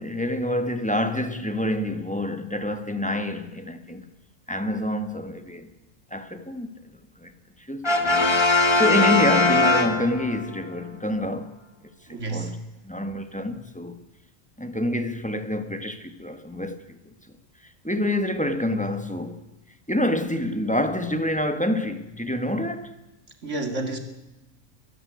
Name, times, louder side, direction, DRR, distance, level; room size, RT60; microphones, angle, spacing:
voice 1, 0.0-4.0 4.5-5.7 6.1-6.7 7.2-7.3 7.7-11.6 12.1-12.6 12.8-14.0 14.6-17.0 17.8-19.4 19.9-22.9, left 1 dB, 5° left, 1.4 m, -27 dB
Brass instrument, 7.8-10.5, left 2 dB, 20° left, 1.6 m, -20 dB
voice 2, 12.1-12.5 23.4-24.0, right 2 dB, 65° right, 2.9 m, -30 dB
22.5 x 13.0 x 9.4 m
omnidirectional pair, 1.3 m